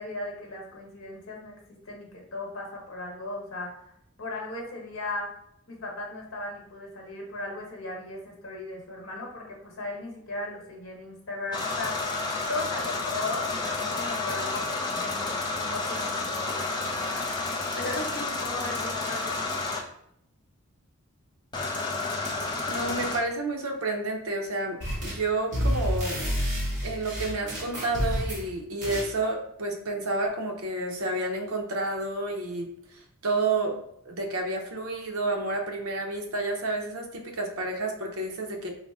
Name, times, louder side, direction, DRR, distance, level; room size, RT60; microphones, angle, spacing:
voice 1, 0.0-1.6 1.8-3.8 4.2-5.3 5.7-12.0 12.5-19.6, left 2 dB, 60° left, -1 dB, 1.0 m, -37 dB
sound 1, 11.5-19.8 21.5-23.2, left 3 dB, 20° left, 0.4 m, -30 dB
voice 2, 22.7-26.2 26.8-33.8 34.0-38.7, right 2 dB, 75° right, 2 dB, 0.7 m, -30 dB
sound 2, 24.8-25.2 25.5-28.5 28.8-29.1, equal, 35° right, 1.4 m, -29 dB
3.9 x 2.0 x 3.5 m, 0.75 s
head